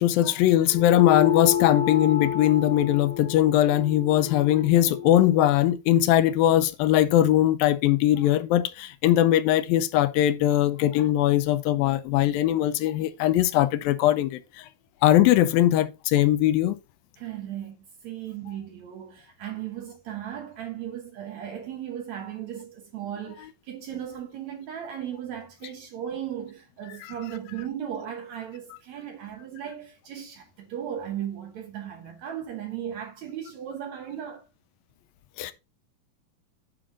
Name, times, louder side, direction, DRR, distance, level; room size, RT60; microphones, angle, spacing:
voice 1, 0.0-14.7 15.0-16.8 35.4-35.5, left 13 dB, 80° left, 2.3 m, -21 dB
sound 1, 0.7-5.5, left 10 dB, 40° left, 2.7 m, -29 dB
voice 2, 17.2-17.8 18.0-34.5, right 10 dB, 65° right, 2.0 m, -36 dB
9.3 x 5.0 x 3.7 m
omnidirectional pair, 4.2 m